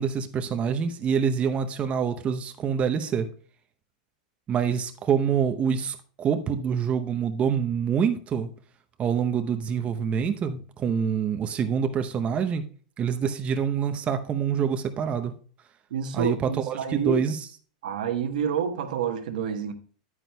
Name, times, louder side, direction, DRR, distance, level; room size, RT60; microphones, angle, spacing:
voice 1, 0.0-3.3 4.5-8.5 9.0-12.6 13.0-15.3 16.1-17.4, right 7 dB, 30° right, 0.8 m, -26 dB
voice 2, 15.9-17.3 17.8-19.7, right 7 dB, 80° right, 1.2 m, -28 dB
9.9 x 9.2 x 2.3 m
hypercardioid pair, 115°, 4 cm